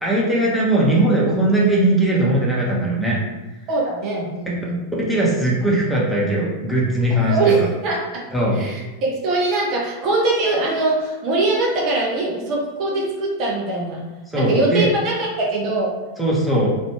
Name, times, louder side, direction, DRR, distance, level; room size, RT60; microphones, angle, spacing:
voice 1, 0.0-3.2 5.1-7.7 8.3-8.6 14.3-14.9 16.2-16.7, right 1 dB, ahead, -6 dB, 0.9 m, -19 dB
voice 2, 3.7-4.8 7.3-8.0 8.5-14.0 14.3-15.9, right 2 dB, 40° right, -3 dB, 0.7 m, -22 dB
3.1 x 2.5 x 2.9 m, 1.1 s
figure-of-eight pair, 90°, 0 cm